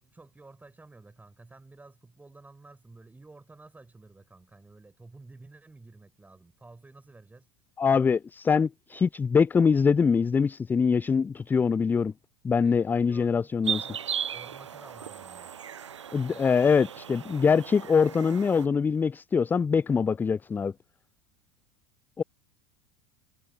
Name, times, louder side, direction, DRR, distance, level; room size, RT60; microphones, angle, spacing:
voice 1, 0.0-7.5 12.6-13.5 13.8-15.5, right 3 dB, 10° right, 5.9 m, -52 dB
voice 2, 7.8-12.1 12.4-13.9 16.1-20.7 22.2-22.3, left 5 dB, 10° left, 0.3 m, -23 dB
sound 1, 13.6-18.7, right 8 dB, 75° right, 0.8 m, -36 dB
figure-of-eight pair, 75°, 15 cm